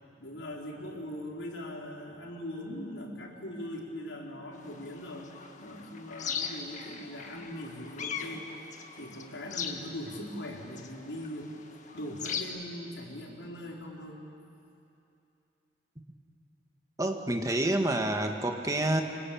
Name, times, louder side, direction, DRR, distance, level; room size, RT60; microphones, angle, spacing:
voice 1, 0.0-5.3 5.6-8.5 9.0-11.5 11.9-14.2, left 1 dB, 80° left, -1 dB, 4.3 m, -40 dB
sound 1, 4.6-12.4, left 6 dB, 40° left, 1.7 m, -40 dB
voice 2, 17.0-19.0, right 1 dB, 20° right, 4 dB, 1.6 m, -28 dB
25.5 x 24.5 x 8.8 m, 2.7 s
head